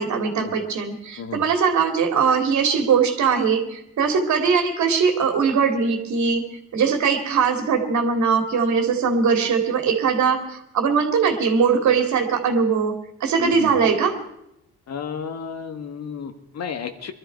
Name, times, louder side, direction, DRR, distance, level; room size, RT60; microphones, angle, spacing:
voice 1, 0.0-14.2, right 6 dB, 70° right, 5 dB, 2.3 m, -21 dB
voice 2, 13.4-13.7 14.9-17.1, left 6 dB, 60° left, 8 dB, 1.5 m, -32 dB
20.5 x 12.5 x 4.6 m, 0.79 s
cardioid pair, 90°, 30 cm